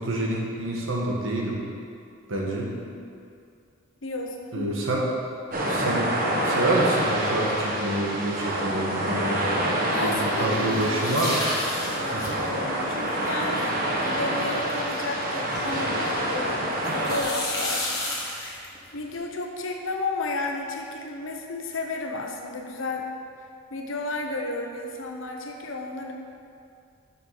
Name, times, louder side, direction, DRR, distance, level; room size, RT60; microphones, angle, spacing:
voice 1, 0.0-1.6 2.3-2.7 4.5-5.0 5.6-6.1 6.4-9.4 10.0-11.4 12.1-12.2, right 1 dB, 70° right, -2 dB, 1.6 m, -27 dB
voice 2, 2.4-3.1 4.0-4.7 9.9-11.2 11.8-18.0 18.4-23.1 23.7-26.1, left 2 dB, 65° left, 2 dB, 1.0 m, -33 dB
sound 1, 5.5-17.2, right 1 dB, 40° right, 1.3 m, -27 dB
sound 2, 10.5-16.5 16.8-19.2, left 1 dB, 15° left, 1.4 m, -33 dB
7.1 x 6.0 x 6.6 m, 2.4 s
head